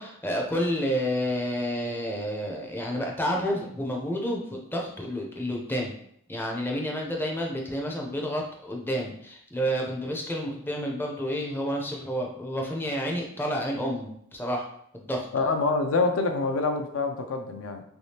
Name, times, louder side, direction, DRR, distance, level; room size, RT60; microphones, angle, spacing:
voice 1, 0.0-5.9 6.3-14.7 14.9-15.3, equal, 10° left, 0 dB, 0.5 m, -30 dB
voice 2, 15.3-17.8, left 3 dB, 65° left, 6 dB, 0.4 m, -26 dB
3.4 x 3.1 x 2.7 m, 0.70 s
head